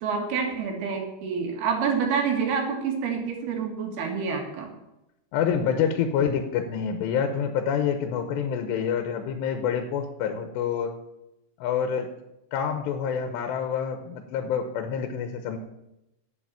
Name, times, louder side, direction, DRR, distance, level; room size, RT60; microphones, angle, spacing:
voice 1, 0.0-4.7, right 6 dB, 70° right, 2 dB, 3.7 m, -27 dB
voice 2, 5.3-10.9 11.6-12.1 12.5-15.6, left 7 dB, 90° left, 6 dB, 3.0 m, -27 dB
9.3 x 8.0 x 8.8 m, 0.91 s
omnidirectional pair, 4.9 m